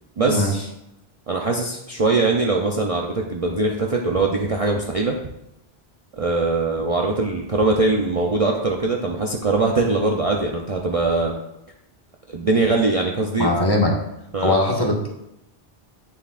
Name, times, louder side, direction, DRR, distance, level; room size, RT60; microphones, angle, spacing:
voice 1, 0.2-0.7 1.3-5.2 6.2-11.3 12.3-13.5 14.3-14.6, right 3 dB, 40° right, 0 dB, 0.7 m, -21 dB
voice 2, 13.4-13.9 14.4-15.1, left 1 dB, 25° left, -2 dB, 1.5 m, -20 dB
9.4 x 7.0 x 2.5 m, 0.84 s
omnidirectional pair, 1.0 m